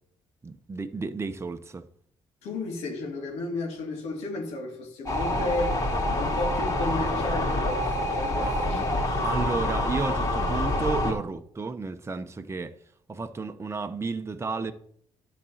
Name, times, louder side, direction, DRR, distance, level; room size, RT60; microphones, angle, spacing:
voice 1, 0.4-1.9 8.4-8.9 9.2-12.7 13.1-14.7, right 4 dB, 25° right, 0.8 m, -32 dB
voice 2, 2.4-5.9 6.2-9.0 9.4-9.5, left 2 dB, 85° left, 2.4 m, -33 dB
sound 1, 5.1-11.1, left 1 dB, 30° left, 3.1 m, -27 dB
10.0 x 4.2 x 7.2 m
cardioid pair, 75°, 11 cm